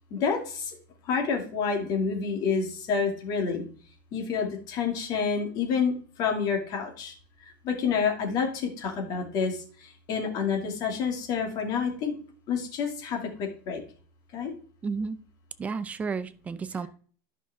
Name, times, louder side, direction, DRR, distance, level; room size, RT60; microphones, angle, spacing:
voice 1, 0.1-0.8 1.1-3.7 4.1-7.1 7.4-12.1 12.5-13.8 14.3-14.5, left 6 dB, 40° left, 2 dB, 2.5 m, -28 dB
voice 2, 14.8-15.2 15.6-16.9, right 5 dB, 15° right, 13 dB, 0.5 m, -32 dB
11.0 x 5.7 x 3.6 m, 0.44 s
supercardioid pair, 160°, 10 cm